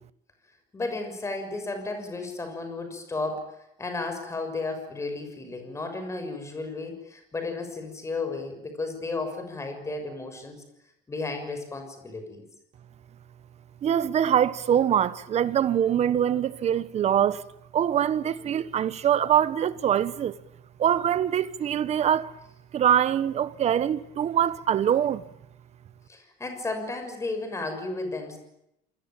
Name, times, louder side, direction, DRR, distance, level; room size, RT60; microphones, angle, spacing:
voice 1, 0.7-10.6 11.1-12.4 26.1-28.4, left 3 dB, 15° left, 6.6 m, -33 dB
voice 2, 13.8-17.4 17.7-20.3 20.8-22.3 22.7-25.2, right 9 dB, 35° right, 1.3 m, -23 dB
27.5 x 21.5 x 9.1 m
cardioid pair, 155°, 19 cm